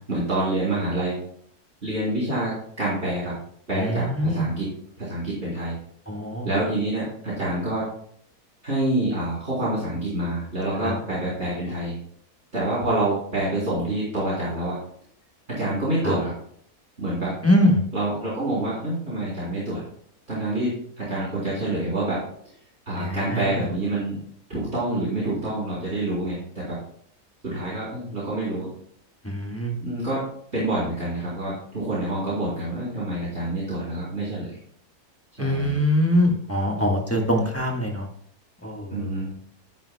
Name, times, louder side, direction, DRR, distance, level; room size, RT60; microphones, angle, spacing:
voice 1, 0.1-1.2 1.8-3.4 3.7-4.7 5.0-5.7 6.4-7.9 8.6-12.0 12.5-14.8 15.6-16.3 17.0-17.4 17.9-19.8 20.3-22.2 22.9-24.2 24.5-26.8 27.4-28.7 29.8-30.2 30.5-34.5 35.4-35.8 37.1-37.2 38.9-39.3, right 1 dB, 45° right, -10 dB, 3.7 m, -27 dB
voice 2, 3.7-4.4 6.1-6.5 10.8-11.0 16.0-16.2 17.4-17.9 23.0-23.7 29.2-29.7 35.4-38.1 38.6-39.1, equal, 10° left, 1 dB, 1.2 m, -23 dB
10.5 x 9.9 x 2.2 m, 0.63 s
omnidirectional pair, 1.6 m